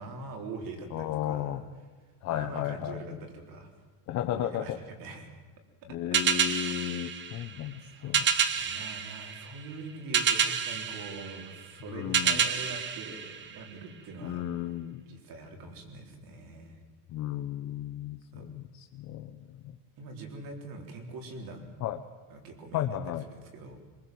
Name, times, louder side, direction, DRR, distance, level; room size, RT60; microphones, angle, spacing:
voice 1, 0.0-1.6 2.3-3.7 4.3-5.3 6.6-6.8 7.8-14.5 15.1-16.8 18.3-18.5 20.0-21.8 22.3-22.9 23.3-23.8, right 3 dB, 45° right, 4 dB, 4.0 m, -43 dB
voice 2, 0.9-1.6 2.2-3.2 4.1-4.8 5.9-8.3 11.9-12.4 14.2-15.0 17.1-19.8 21.8-22.0 22.7-23.2, left 12 dB, 35° left, 6 dB, 1.0 m, -34 dB
sound 1, 6.1-14.0, right 7 dB, 25° right, 1.1 m, -29 dB
24.0 x 22.5 x 7.8 m, 1.4 s
cardioid pair, 170°, 48 cm